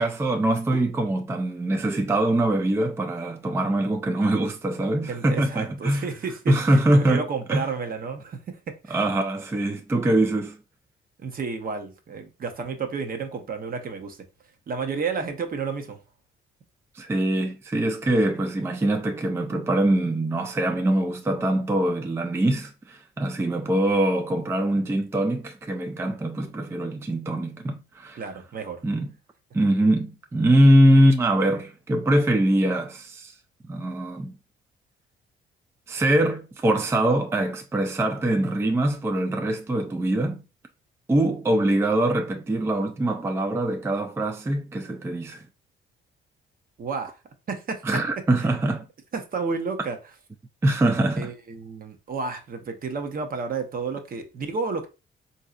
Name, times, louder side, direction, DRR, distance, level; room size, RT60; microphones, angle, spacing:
voice 1, 0.0-6.1 6.5-7.2 7.5-7.7 8.9-10.6 16.9-28.2 28.8-29.1 29.5-33.3 33.7-34.3 35.9-40.4 41.1-45.4 47.8-48.9 50.6-51.3, right 1 dB, 15° right, 0.4 m, -23 dB
voice 2, 5.1-6.8 7.1-9.0 11.2-14.2 14.7-16.0 28.1-28.8 46.8-47.1 47.5-48.0 48.4-48.5 49.1-50.0 51.2-54.9, right 5 dB, 45° right, 0.8 m, -31 dB
3.9 x 2.7 x 2.4 m
cardioid pair, 90°, 20 cm